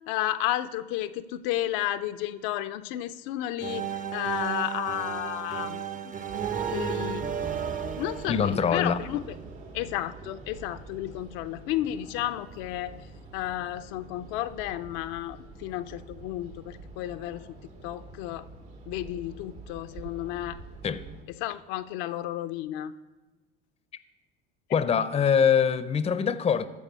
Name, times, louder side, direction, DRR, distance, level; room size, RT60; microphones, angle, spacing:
voice 1, 0.1-6.1 6.7-7.2 8.0-9.2 9.7-13.1 13.3-17.5 17.8-18.5 18.9-20.6 21.3-22.9, left 13 dB, 70° left, 0.5 m, -32 dB
sound 1, 3.6-9.4, right 8 dB, 25° right, 0.6 m, -33 dB
sound 2, 6.3-21.2, right 3 dB, 75° right, 2.2 m, -46 dB
voice 2, 8.3-9.0 20.8-21.0 24.7-26.7, left 7 dB, 20° left, 0.5 m, -23 dB
14.5 x 4.9 x 5.4 m
supercardioid pair, 95°, 29 cm